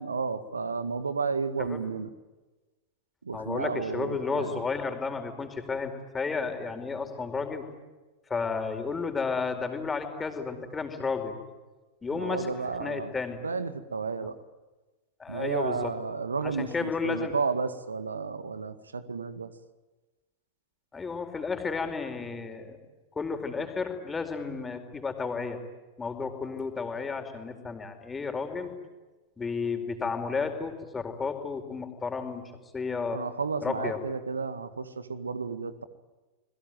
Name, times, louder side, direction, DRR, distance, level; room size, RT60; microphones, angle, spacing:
voice 1, 0.0-2.1 3.3-4.6 12.2-13.1 13.4-14.4 15.3-19.5 33.1-35.8, right 4 dB, 75° right, 13 dB, 1.9 m, -32 dB
voice 2, 3.3-7.6 8.3-11.4 12.0-12.5 12.8-13.4 15.2-15.9 16.4-17.3 20.9-22.8 23.2-25.6 26.0-28.7 29.4-32.4 32.7-33.2 33.6-34.0, left 4 dB, 15° left, 6 dB, 4.8 m, -32 dB
28.5 x 22.0 x 9.3 m, 1.2 s
figure-of-eight pair, 90°, 0 cm